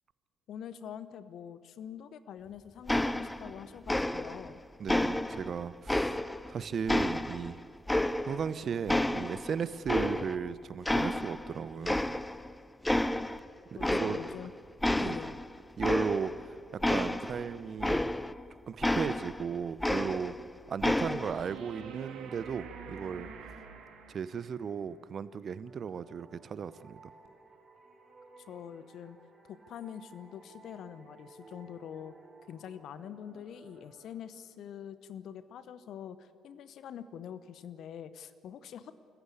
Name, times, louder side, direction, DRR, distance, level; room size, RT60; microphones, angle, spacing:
voice 1, 0.5-4.6 13.8-14.5 14.9-15.4 28.4-29.2 29.4-32.2 32.5-38.9, left 9 dB, 55° left, 14 dB, 0.9 m, -45 dB
sound 1, 2.9-3.6 3.9-4.5 4.9-6.5 6.9-8.5 8.9-10.5 10.8-11.5 11.8-12.5 12.8-13.4 13.8-14.5 14.8-18.4 18.8-20.5 20.8-21.4, left 1 dB, 10° left, 0.6 m, -30 dB
voice 2, 4.8-6.2 6.5-7.6 8.2-12.0 13.7-14.2 15.0-15.2 15.8-18.1 18.7-20.4 20.7-23.3 24.1-27.1, right 7 dB, 45° right, 17 dB, 0.8 m, -36 dB
sound 2, 21.3-24.6 27.3-27.4, right 6 dB, 60° right, 2.1 m, -46 dB
sound 3, 25.7-35.1, right 3 dB, 30° right, 2.9 m, -57 dB
26.0 x 14.5 x 8.4 m, 2.4 s
figure-of-eight pair, 50°, 0 cm